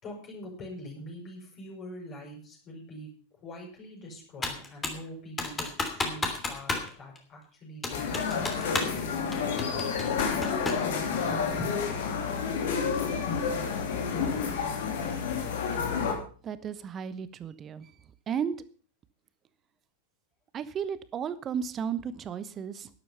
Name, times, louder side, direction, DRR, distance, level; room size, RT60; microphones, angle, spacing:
voice 1, 0.0-3.1 3.4-6.7 7.0-8.6 11.6-11.7, equal, 35° left, -1 dB, 6.6 m, -43 dB
Computer keyboard, 4.4-5.0 5.4-6.9 7.1-7.2 7.8-9.0 9.3-10.9, left 3 dB, 15° left, 2.9 m, -32 dB
sound 1, 7.9-16.1, left 6 dB, 55° left, 3.1 m, -30 dB
voice 2, 16.4-17.9 18.3-18.6 20.5-22.9, right 7 dB, 25° right, 15 dB, 1.0 m, -34 dB
12.0 x 11.0 x 5.7 m, 0.42 s
figure-of-eight pair, 90°, 0 cm